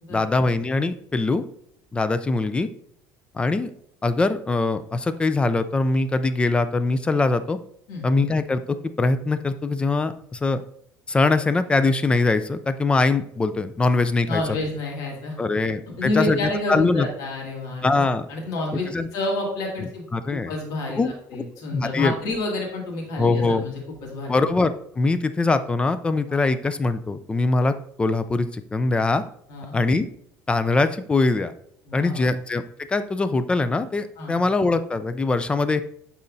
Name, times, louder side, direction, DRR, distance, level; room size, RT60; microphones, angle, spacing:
voice 1, 0.1-1.4 1.9-2.7 3.3-3.7 4.0-7.6 8.0-10.6 11.1-14.4 15.4-16.4 16.7-17.1 17.8-18.3 18.9-19.1 20.1-20.5 21.0-21.4 21.7-22.1 23.2-23.6 24.3-29.2 29.7-30.1 30.5-31.5 31.9-32.6 32.9-35.8, left 3 dB, 15° left, 12 dB, 0.3 m, -22 dB
voice 2, 14.3-15.4 16.0-18.0 18.3-18.9 19.1-21.0 21.3-23.7 24.0-24.4 26.3-26.4 29.5-29.8 31.9-32.3 34.2-34.4, left 2 dB, 70° left, -1 dB, 2.2 m, -29 dB
10.5 x 4.2 x 2.6 m, 0.69 s
cardioid pair, 145°, 7 cm